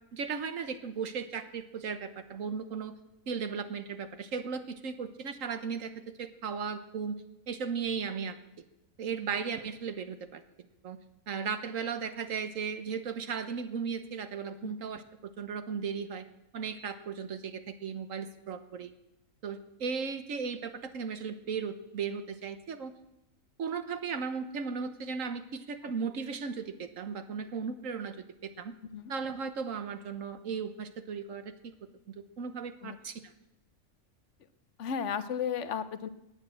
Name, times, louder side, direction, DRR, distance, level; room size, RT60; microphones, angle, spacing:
voice 1, 0.1-2.9 3.3-8.4 9.0-10.4 10.8-11.0 11.3-16.3 16.5-18.9 19.4-22.9 23.6-28.7 29.1-31.5 32.1-33.2, right 6 dB, 65° right, 10 dB, 1.5 m, -36 dB
voice 2, 34.8-36.1, left 7 dB, 60° left, 12 dB, 1.1 m, -34 dB
19.5 x 7.5 x 7.7 m, 0.91 s
omnidirectional pair, 1.5 m